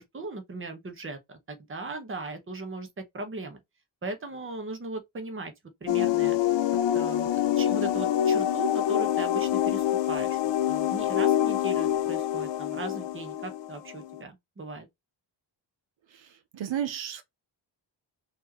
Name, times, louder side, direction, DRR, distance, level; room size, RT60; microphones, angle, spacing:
voice 1, 0.0-3.6 4.0-5.5 5.8-6.4 6.9-7.3 7.6-10.4 10.7-14.9, right 3 dB, 25° right, 1.0 m, -38 dB
sound 1, 5.9-14.2, left 11 dB, 70° left, 0.5 m, -26 dB
voice 2, 16.1-17.2, right 9 dB, 80° right, 0.8 m, -33 dB
4.3 x 3.1 x 3.0 m
wide cardioid pair, 130°, 46 cm